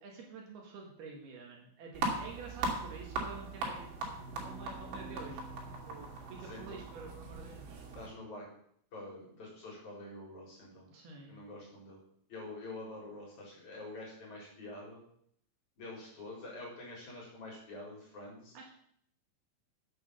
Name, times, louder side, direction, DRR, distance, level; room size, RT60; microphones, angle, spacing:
voice 1, 0.0-5.4 5.9-7.8 10.9-11.4 18.5-18.7, right 4 dB, 65° right, 0 dB, 3.6 m, -49 dB
sound 1, 1.9-8.1, right 3 dB, 85° right, 5.0 m, -39 dB
voice 2, 8.0-8.5 8.9-10.9 11.3-12.0 12.3-15.0 15.8-18.5, left 2 dB, 40° left, -4 dB, 5.3 m, -46 dB
9.1 x 8.6 x 6.9 m, 0.68 s
omnidirectional pair, 5.2 m